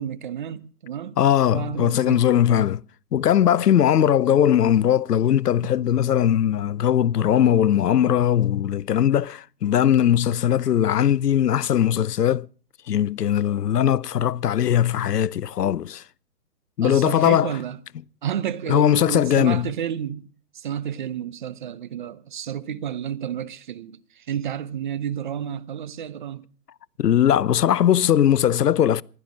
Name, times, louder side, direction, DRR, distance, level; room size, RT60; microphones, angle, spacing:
voice 1, 0.0-1.2 1.5-2.7 16.8-17.8 18.2-26.4, right 9 dB, 30° right, 0.6 m, -31 dB
voice 2, 1.2-2.8 3.1-12.5 12.9-16.0 16.8-17.5 18.7-19.7 27.0-29.0, left 10 dB, 80° left, 0.6 m, -20 dB
15.0 x 12.0 x 6.2 m
figure-of-eight pair, 130°, 48 cm